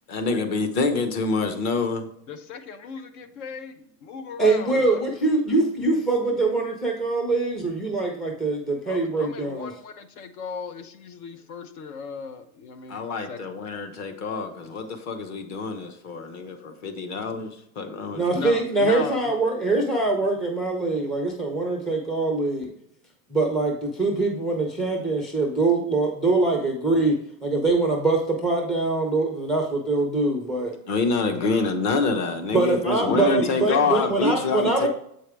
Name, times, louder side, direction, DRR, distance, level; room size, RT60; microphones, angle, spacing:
voice 1, 0.1-2.1 12.9-18.4 30.9-34.9, left 3 dB, 35° left, 6 dB, 1.1 m, -26 dB
voice 2, 2.3-3.7 4.0-5.0 8.9-13.4 18.3-19.4 31.3-31.7 32.5-32.7 33.1-34.9, left 6 dB, 70° left, 9 dB, 1.0 m, -36 dB
voice 3, 4.4-9.7 18.1-22.7 23.3-27.2 27.4-30.8 32.5-34.9, right 3 dB, ahead, 0 dB, 0.4 m, -23 dB
7.7 x 4.7 x 3.4 m, 0.71 s
supercardioid pair, 140°, 46 cm